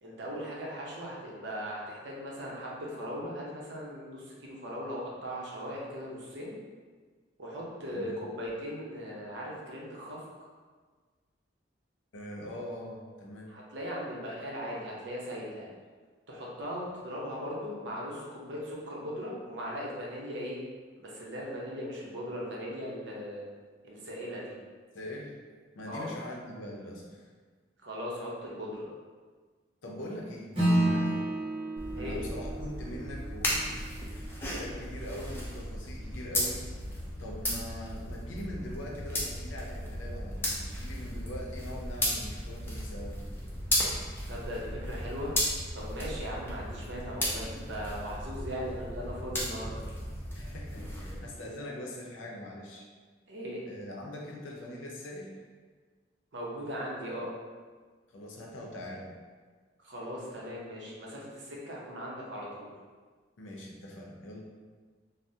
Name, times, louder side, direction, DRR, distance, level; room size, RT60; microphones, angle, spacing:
voice 1, 0.0-6.6 7.4-10.2 13.5-15.7 16.3-20.6 21.0-23.4 23.8-24.5 25.9-26.1 27.8-28.9 31.9-32.2 44.3-45.4 45.7-49.8 53.3-53.6 56.3-57.3 59.8-62.7, equal, 70° right, -4 dB, 0.7 m, -38 dB
voice 2, 7.9-8.2 12.1-13.5 24.9-25.3 25.7-27.3 29.8-31.3 31.9-36.6 37.2-43.2 50.4-52.9 53.7-55.4 58.1-59.1 63.4-64.4, left 1 dB, 85° left, -1 dB, 0.5 m, -42 dB
Acoustic guitar / Strum, 30.5-35.3, right 1 dB, 25° right, 0.9 m, -31 dB
sound 1, 31.8-51.2, equal, 10° left, 0.4 m, -35 dB
3.4 x 2.0 x 2.6 m, 1.5 s
head